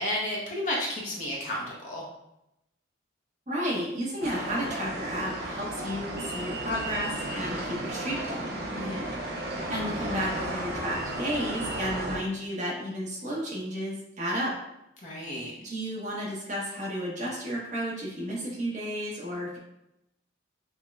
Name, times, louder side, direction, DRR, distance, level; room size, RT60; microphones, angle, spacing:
voice 1, 0.0-2.0 8.7-9.2 15.0-15.5, left 1 dB, 40° left, -3 dB, 0.6 m, -32 dB
voice 2, 3.5-8.9 9.7-14.5 15.6-19.6, equal, 40° right, -4 dB, 1.0 m, -32 dB
sound 1, 4.2-12.2, right 1 dB, 55° right, 0.7 m, -34 dB
5.5 x 2.1 x 2.3 m, 0.85 s
head